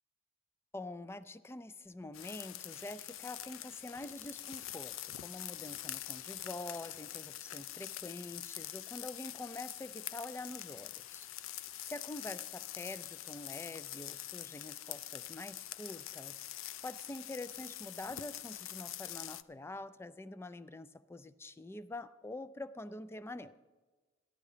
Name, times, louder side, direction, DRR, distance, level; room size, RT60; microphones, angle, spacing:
voice 1, 0.7-23.6, left 2 dB, 15° left, 15 dB, 0.3 m, -46 dB
sound 1, 2.1-19.4, left 13 dB, 85° left, 0.4 m, -45 dB
14.0 x 11.0 x 5.0 m, 1.3 s
head